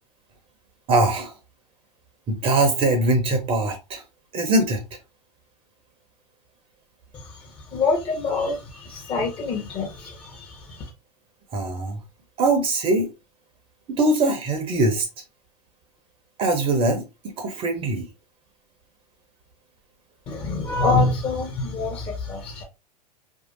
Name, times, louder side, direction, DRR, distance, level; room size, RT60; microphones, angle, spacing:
voice 1, 0.9-1.4 2.3-4.0 4.3-4.8 11.5-12.0 12.4-13.1 13.9-15.1 16.4-18.1, right 2 dB, 25° right, 0.7 m, -22 dB
voice 2, 7.1-10.9 20.3-22.6, left 3 dB, 25° left, 0.9 m, -26 dB
4.6 x 2.7 x 2.5 m
figure-of-eight pair, 90°, 21 cm